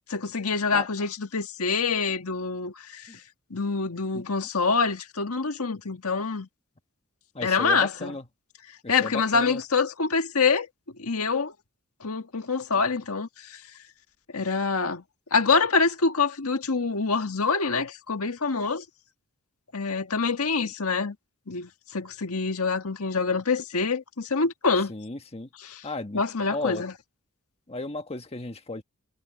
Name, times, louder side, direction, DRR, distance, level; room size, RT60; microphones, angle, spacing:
voice 1, 0.1-3.1 3.5-6.5 7.4-8.1 8.9-10.7 11.0-11.5 12.0-13.6 14.3-15.0 15.3-18.8 19.7-21.1 21.5-24.9 25.6-25.8 26.1-26.9, left 4 dB, 85° left, 1.6 m, -26 dB
voice 2, 7.3-8.2 8.8-9.6 24.9-25.5 25.8-26.2 26.5-26.8 27.7-28.8, left 2 dB, 30° left, 1.4 m, -34 dB
head